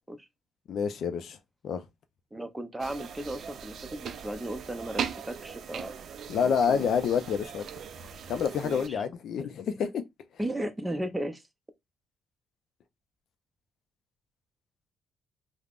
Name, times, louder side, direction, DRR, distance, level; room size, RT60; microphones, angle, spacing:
voice 1, 0.7-1.4 1.6-1.8 6.3-7.7 8.3-10.0, left 7 dB, 70° left, 0.4 m, -28 dB
voice 2, 2.3-5.9 6.4-6.9 8.6-9.0 10.4-11.4, right 1 dB, 10° right, 0.5 m, -35 dB
sound 1, 2.8-8.9, right 7 dB, 65° right, 0.4 m, -39 dB
3.3 x 2.0 x 2.4 m
cardioid pair, 90°, 0 cm